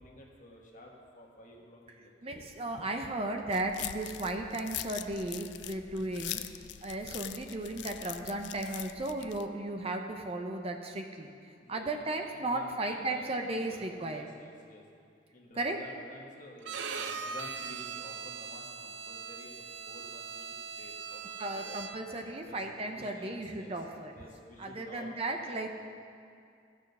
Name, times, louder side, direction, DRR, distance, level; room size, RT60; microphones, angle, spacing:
voice 1, 0.0-2.3 7.0-7.1 11.6-14.8 15.3-21.8 22.4-22.6 22.9-23.7 24.1-25.2 25.6-25.7, left 1 dB, 45° left, -1 dB, 1.5 m, -52 dB
voice 2, 2.2-11.3 11.7-14.3 15.6-15.8 21.4-24.1 24.6-25.7, right 2 dB, 30° right, 4 dB, 0.6 m, -35 dB
sound 1, 3.5-9.5, left 12 dB, 65° left, 0.4 m, -42 dB
Bowed string instrument, 16.6-22.2, right 6 dB, 75° right, 0.6 m, -40 dB
14.5 x 6.2 x 5.4 m, 2.3 s
head